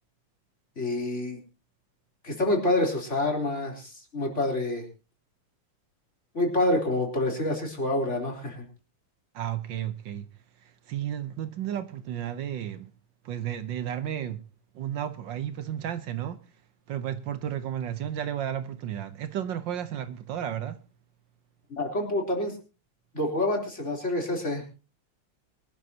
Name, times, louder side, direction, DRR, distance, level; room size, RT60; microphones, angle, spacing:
voice 1, 0.8-1.4 2.2-4.8 6.3-8.6 21.7-22.6 23.1-24.6, left 1 dB, 35° left, 4.1 m, -27 dB
voice 2, 9.3-10.3 10.6-12.9 13.2-14.4 14.7-16.4 16.9-20.8, right 10 dB, 70° right, 1.5 m, -33 dB
23.5 x 12.5 x 2.8 m
omnidirectional pair, 2.2 m